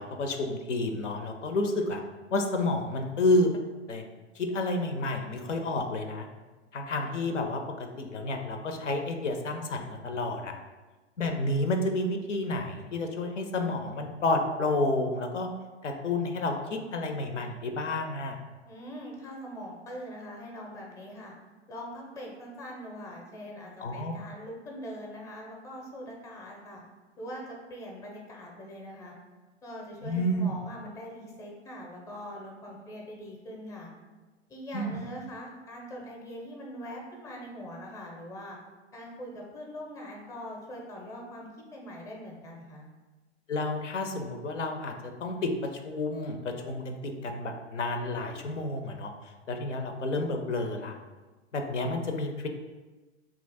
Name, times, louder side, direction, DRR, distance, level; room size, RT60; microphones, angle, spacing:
voice 1, 0.0-2.0 2.3-3.5 3.9-4.0 4.4-6.3 6.7-10.6 11.2-15.5 15.8-18.4 23.8-24.1 30.0-30.5 34.7-35.0 43.5-49.1 49.5-50.9 51.5-52.5, left 2 dB, 90° left, 4 dB, 0.5 m, -30 dB
voice 2, 18.7-21.3 21.7-26.8 27.2-29.1 29.6-33.9 34.5-38.6 38.9-42.8, equal, 10° left, 0 dB, 0.5 m, -42 dB
2.8 x 2.4 x 4.0 m, 1.2 s
figure-of-eight pair, 100°, 35 cm